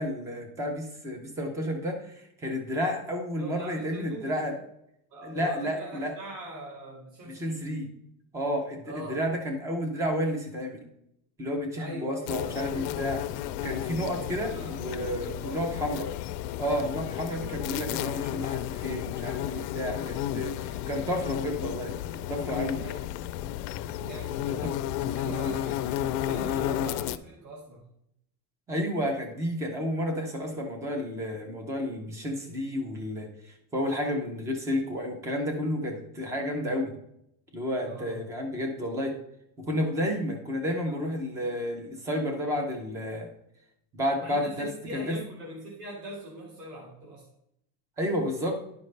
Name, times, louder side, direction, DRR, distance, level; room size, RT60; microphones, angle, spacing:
voice 1, 0.0-4.6 5.2-6.1 7.3-7.9 8.3-10.8 11.4-13.2 13.6-16.1 16.6-22.8 24.6-24.7 25.3-25.5 28.7-36.9 37.5-39.2 39.7-43.3 43.9-45.2 48.0-48.6, equal, 5° right, 4 dB, 0.3 m, -31 dB
voice 2, 3.4-4.3 5.1-7.6 8.8-9.2 11.8-12.6 14.1-15.6 22.8-23.0 23.9-24.6 25.0-27.8 37.8-38.2 40.6-41.0 44.2-47.2, right 1 dB, 45° right, -3 dB, 2.0 m, -42 dB
sound 1, 12.3-27.2, left 12 dB, 75° left, 0.6 m, -32 dB
11.0 x 5.2 x 3.2 m, 0.77 s
cardioid pair, 175°, 49 cm